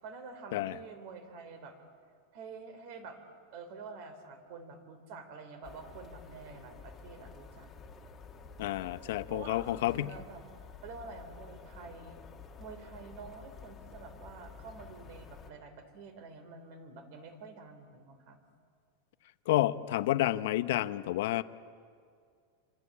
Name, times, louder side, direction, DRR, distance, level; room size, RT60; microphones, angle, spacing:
voice 1, 0.0-1.8 2.3-3.2 3.5-7.7 8.8-10.4 10.8-12.2 12.6-18.4, right 4 dB, 45° right, 9 dB, 3.6 m, -48 dB
sound 1, 5.6-15.5, left 5 dB, 15° left, 2.0 m, -51 dB
voice 2, 8.6-10.2 19.5-21.4, left 15 dB, 60° left, 13 dB, 0.9 m, -30 dB
27.0 x 25.5 x 8.5 m, 2.2 s
supercardioid pair, 175°, 0 cm